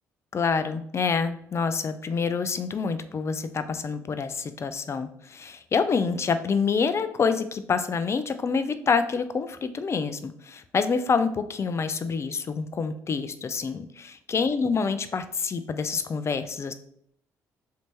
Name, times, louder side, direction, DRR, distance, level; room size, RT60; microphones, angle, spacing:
voice 1, 0.3-16.7, left 5 dB, 40° left, 11 dB, 0.4 m, -27 dB
3.2 x 2.7 x 3.0 m, 0.68 s
hypercardioid pair, 50°, 7 cm